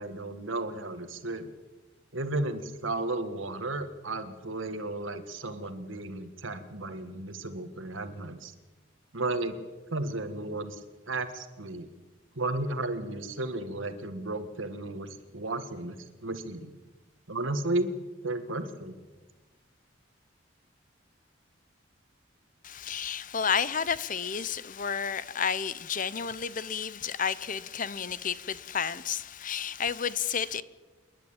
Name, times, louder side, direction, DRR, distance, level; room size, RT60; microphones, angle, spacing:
voice 1, 0.0-1.5 2.1-8.5 9.1-9.6 9.9-10.8 11.1-11.9 12.3-16.7 17.3-17.9 18.2-19.0, right 2 dB, 80° right, 1.7 m, -34 dB
voice 2, 22.6-30.6, left 7 dB, 40° left, 0.7 m, -31 dB
28.0 x 11.0 x 8.8 m
head